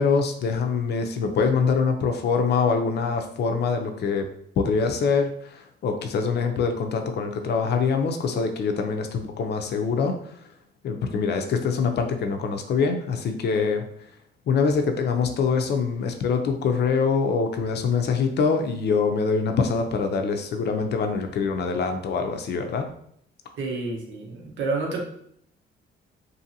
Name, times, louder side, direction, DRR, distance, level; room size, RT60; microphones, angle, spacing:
voice 1, 0.0-4.3 4.6-5.3 5.8-10.2 10.8-13.8 14.5-22.9, left 5 dB, 55° left, 5 dB, 0.5 m, -24 dB
voice 2, 23.6-25.0, right 3 dB, 75° right, -1 dB, 0.8 m, -29 dB
2.7 x 2.6 x 2.7 m, 0.67 s
cardioid pair, 90°, 20 cm